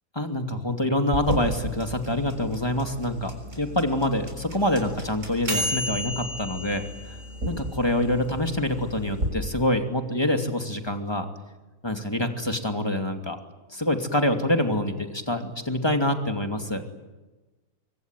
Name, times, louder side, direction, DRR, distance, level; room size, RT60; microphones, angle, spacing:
voice 1, 0.2-3.3 3.6-7.2 7.5-11.3 11.8-13.4 13.7-16.8, left 1 dB, 15° left, 5 dB, 2.7 m, -26 dB
sound 1, 1.1-9.3, equal, 55° right, 6.8 m, -32 dB
25.0 x 24.5 x 9.2 m, 1.2 s
omnidirectional pair, 1.6 m